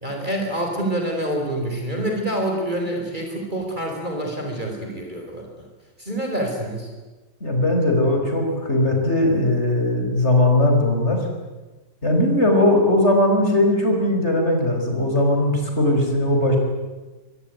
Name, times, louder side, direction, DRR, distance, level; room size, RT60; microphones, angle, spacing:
voice 1, 0.0-5.7 6.0-6.9, right 1 dB, 25° right, 1 dB, 4.6 m, -27 dB
voice 2, 7.4-11.2 12.0-16.6, left 1 dB, 35° left, 3 dB, 5.6 m, -19 dB
24.0 x 22.0 x 9.5 m, 1.2 s
omnidirectional pair, 2.1 m